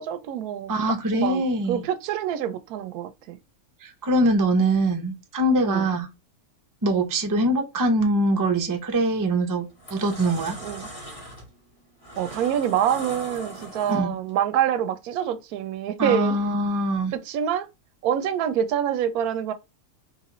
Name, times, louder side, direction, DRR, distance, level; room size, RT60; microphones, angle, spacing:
voice 1, 0.0-0.7 1.1-3.4 5.6-5.9 10.6-10.9 12.2-16.4 17.1-17.7 18.0-19.5, right 9 dB, 90° right, 1.1 m, -26 dB
voice 2, 0.7-1.8 3.8-6.1 6.8-9.6 9.9-10.6 13.9-14.1 16.0-17.1, right 1 dB, 35° right, 0.3 m, -23 dB
sound 1, 8.9-9.1 9.6-14.3, equal, 25° left, 1.7 m, -40 dB
3.9 x 2.9 x 3.0 m
omnidirectional pair, 1.5 m